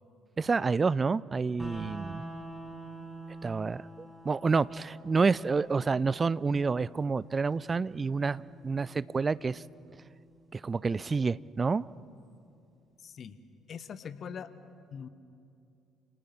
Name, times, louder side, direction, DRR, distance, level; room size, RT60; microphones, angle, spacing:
voice 1, 0.4-2.2 3.4-9.6 10.5-11.9, right 4 dB, 30° right, 20 dB, 0.4 m, -29 dB
sound 1, 1.6-11.6, right 1 dB, ahead, 5.8 m, -47 dB
voice 2, 13.0-13.4 13.7-14.5 14.9-15.1, left 7 dB, 45° left, 14 dB, 1.1 m, -42 dB
29.0 x 28.0 x 4.3 m, 2.5 s
figure-of-eight pair, 50°, 0 cm